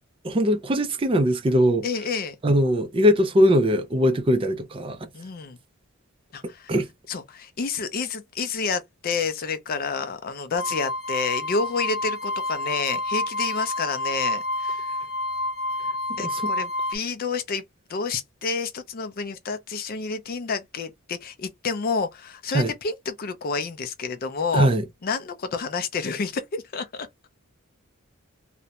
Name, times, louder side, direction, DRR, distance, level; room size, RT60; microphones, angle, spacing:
voice 1, 0.2-1.8 2.4-5.1 6.7-6.9 16.1-16.5 22.5-22.7 24.5-24.8, equal, 25° right, 0.4 m, -21 dB
voice 2, 1.8-2.4 5.1-5.6 6.3-6.7 7.1-14.9 16.2-17.6 17.9-24.7 25.0-27.1, left 5 dB, 40° left, 0.4 m, -29 dB
sound 1, 10.6-17.0, left 2 dB, 75° left, 0.9 m, -28 dB
2.5 x 2.1 x 2.8 m
head